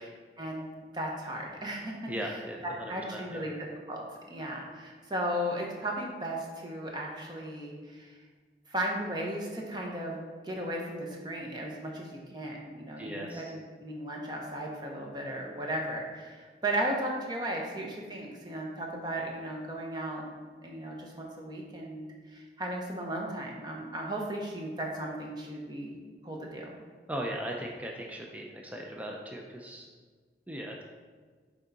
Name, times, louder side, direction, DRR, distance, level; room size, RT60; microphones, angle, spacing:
voice 1, 0.4-0.7 0.9-4.0 4.3-8.2 8.7-20.3 20.6-26.0 26.2-26.7, right 1 dB, 25° right, -1 dB, 0.9 m, -36 dB
voice 2, 2.1-3.4 13.0-13.4 27.1-29.9 30.5-30.8, right 1 dB, 10° right, 0 dB, 0.5 m, -38 dB
6.3 x 4.6 x 4.0 m, 1.5 s
head